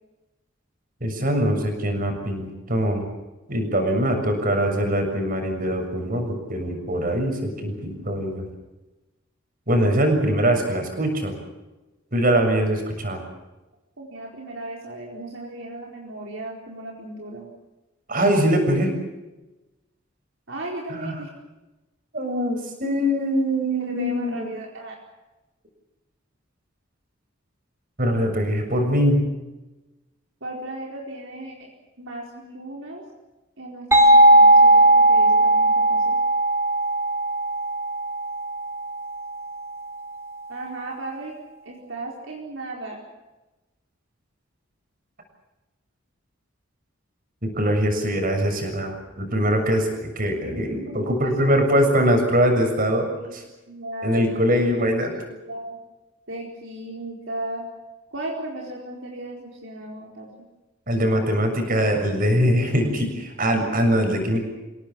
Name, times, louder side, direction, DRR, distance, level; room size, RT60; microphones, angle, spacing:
voice 1, 1.0-3.1 3.5-8.5 9.7-11.4 12.1-13.2 18.1-18.9 20.9-21.2 22.1-24.5 28.0-29.2 47.4-49.9 50.2-53.1 53.3-53.4 54.0-55.1 60.9-64.4, equal, 45° right, 4 dB, 6.9 m, -22 dB
voice 2, 14.0-17.5 20.5-21.3 23.7-25.0 30.4-31.7 32.0-33.0 33.6-36.2 40.5-41.4 41.6-43.0 50.8-51.9 53.0-53.4 53.7-55.8 56.3-57.7 58.1-60.3, right 1 dB, 70° right, -2 dB, 4.4 m, -36 dB
sound 1, 33.9-39.4, right 1 dB, 15° right, 4.3 m, -17 dB
28.5 x 18.0 x 7.6 m, 1.1 s
head